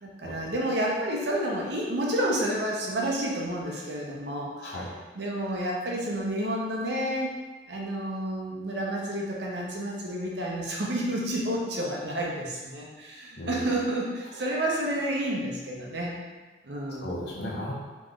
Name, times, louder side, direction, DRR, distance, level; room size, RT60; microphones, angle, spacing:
voice 1, 0.0-4.8 5.2-7.3 7.7-16.1 16.6-17.1, right 1 dB, 70° right, -2 dB, 0.7 m, -30 dB
voice 2, 13.4-13.8 14.3-14.4 17.0-17.7, left 1 dB, 65° left, -3 dB, 0.7 m, -35 dB
3.0 x 2.5 x 3.6 m, 1.3 s
head